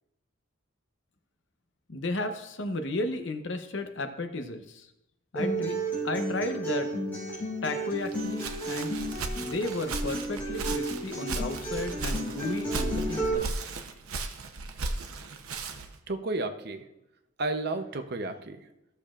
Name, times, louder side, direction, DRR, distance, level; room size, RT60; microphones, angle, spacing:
voice 1, 1.9-4.9 5.3-5.8 6.0-6.9 7.6-9.0 9.4-13.5, left 2 dB, 55° left, 7 dB, 0.8 m, -34 dB
Acoustic guitar, 5.3-13.3, right 1 dB, 10° left, 3.6 m, -33 dB
Walk footsteps, 8.0-16.0, right 3 dB, 85° right, 0.8 m, -36 dB
voice 2, 16.1-16.9 17.4-18.7, right 2 dB, 50° right, 7 dB, 0.7 m, -32 dB
15.0 x 6.8 x 2.5 m, 0.88 s
head